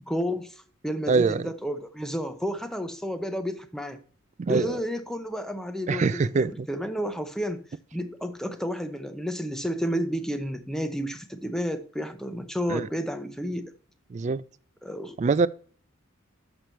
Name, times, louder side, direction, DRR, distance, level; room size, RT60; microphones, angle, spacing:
voice 1, 0.1-4.0 4.5-7.6 7.9-13.7 14.8-15.2, equal, ahead, 0.6 m, -31 dB
voice 2, 1.1-1.5 4.4-4.8 5.9-6.7 12.7-12.9 14.1-14.4 15.2-15.5, right 4 dB, 35° right, 0.3 m, -24 dB
6.7 x 6.0 x 4.3 m
head